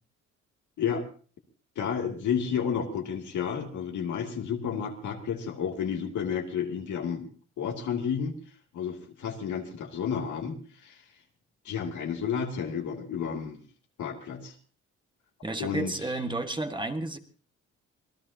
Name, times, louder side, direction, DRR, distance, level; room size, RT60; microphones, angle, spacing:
voice 1, 1.8-7.3 7.6-8.3 8.7-11.0 11.6-13.6 14.0-14.5 15.6-15.9, left 7 dB, 75° left, 2 dB, 2.7 m, -31 dB
voice 2, 15.4-17.2, right 2 dB, 15° right, 6 dB, 1.8 m, -31 dB
26.0 x 17.5 x 2.9 m, 0.40 s
cardioid pair, 90°, 30 cm